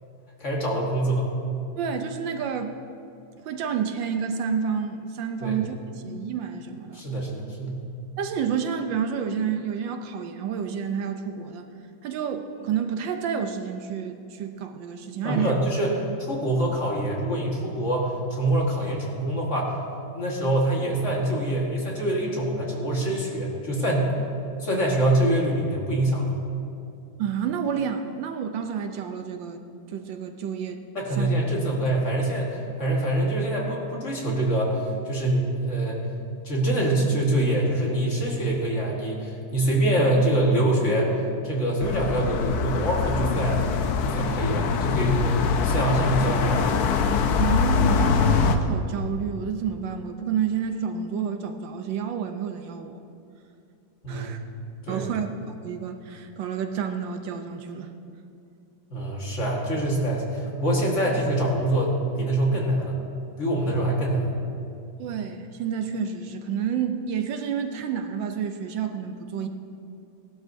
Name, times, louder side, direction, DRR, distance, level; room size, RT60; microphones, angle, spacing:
voice 1, 0.4-1.3 5.4-5.6 6.9-7.8 15.2-19.7 20.1-24.1 24.6-26.3 30.9-36.0 36.4-41.2 41.4-43.6 44.0-45.2 45.6-46.7 54.0-54.4 54.9-55.1 58.9-63.0 63.4-64.3, right 1 dB, 40° left, -3 dB, 1.8 m, -25 dB
voice 2, 1.8-2.7 3.4-7.0 8.2-11.7 12.0-15.6 27.2-29.6 29.9-30.8 31.2-31.3 47.4-53.0 54.1-54.4 54.9-57.9 65.0-69.5, right 7 dB, 75° right, 6 dB, 1.3 m, -29 dB
sound 1, 41.8-48.6, left 5 dB, 65° left, 1.0 m, -23 dB
18.0 x 12.0 x 2.7 m, 2.6 s
omnidirectional pair, 2.2 m